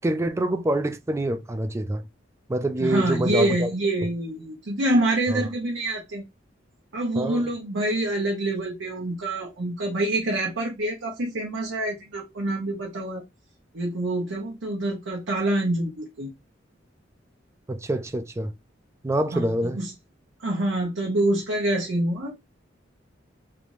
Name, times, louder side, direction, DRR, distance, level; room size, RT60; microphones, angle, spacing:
voice 1, 0.0-2.0 2.5-3.7 5.3-5.4 7.2-7.5 17.7-18.5 19.0-19.8, right 1 dB, 15° right, 0.3 m, -26 dB
voice 2, 2.8-6.2 6.9-13.2 13.7-16.3 19.3-19.9 20.4-22.4, right 1 dB, 80° right, 0.8 m, -26 dB
3.3 x 2.6 x 3.0 m
head